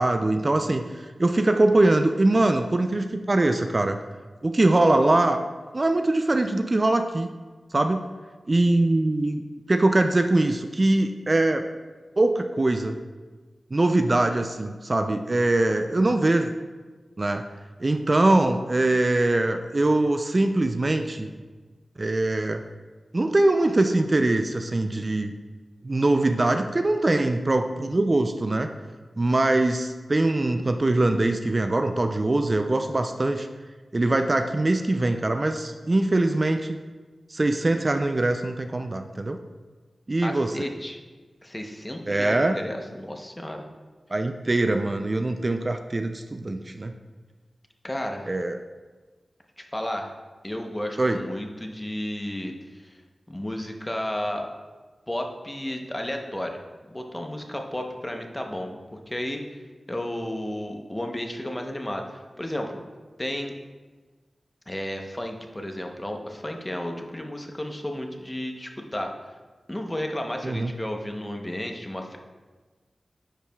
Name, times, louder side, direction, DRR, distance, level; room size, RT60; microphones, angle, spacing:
voice 1, 0.0-4.0 4.4-5.4 5.7-7.3 7.7-8.1 8.5-9.4 9.7-11.6 12.2-13.0 13.7-16.5 17.2-17.4 17.8-21.3 22.0-22.6 23.1-25.3 25.8-28.7 29.2-33.5 33.9-36.8 37.3-39.4 40.1-40.6 42.1-42.6 44.1-46.9 48.3-48.6 51.0-51.2 70.4-70.7, right 2 dB, 40° right, 7 dB, 0.4 m, -22 dB
voice 2, 40.2-41.0 41.4-43.6 47.8-48.3 49.6-50.1 50.4-53.0 53.3-54.5 55.1-56.6 56.9-59.6 59.9-62.8 63.2-63.5 64.7-69.1 69.7-72.2, left 1 dB, 20° left, 3 dB, 0.8 m, -33 dB
10.0 x 4.8 x 2.3 m, 1.3 s
cardioid pair, 50°, 0 cm